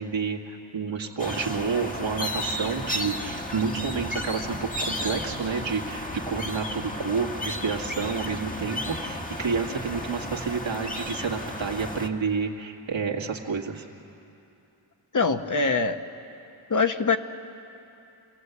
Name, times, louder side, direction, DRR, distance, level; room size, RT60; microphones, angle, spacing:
voice 1, 0.0-13.9, right 5 dB, 85° right, 1 dB, 1.9 m, -29 dB
sound 1, 1.2-12.1, left 1 dB, 20° left, 1.4 m, -33 dB
voice 2, 15.1-16.0 16.7-17.2, left 4 dB, 40° left, 7 dB, 1.1 m, -23 dB
28.0 x 17.5 x 8.1 m, 2.8 s
wide cardioid pair, 75°, 45 cm